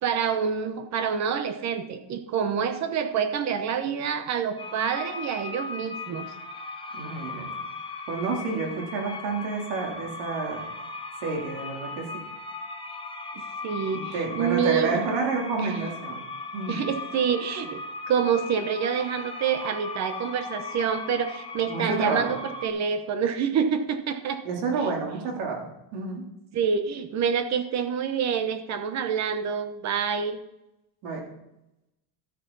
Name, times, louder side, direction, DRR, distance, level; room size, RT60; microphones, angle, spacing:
voice 1, 0.0-6.3 13.4-15.0 15.6-15.9 16.7-17.8 18.1-24.4 26.5-30.4, right 7 dB, 35° right, 9 dB, 1.0 m, -27 dB
sound 1, 4.6-22.7, left 3 dB, 10° left, 0.8 m, -38 dB
voice 2, 6.9-7.5 8.1-10.6 11.2-12.1 13.9-16.2 16.5-16.8 21.7-22.3 24.4-26.2 31.0-31.2, right 4 dB, 70° right, 0 dB, 3.5 m, -29 dB
12.5 x 9.2 x 4.1 m, 0.88 s
cardioid pair, 155°, 46 cm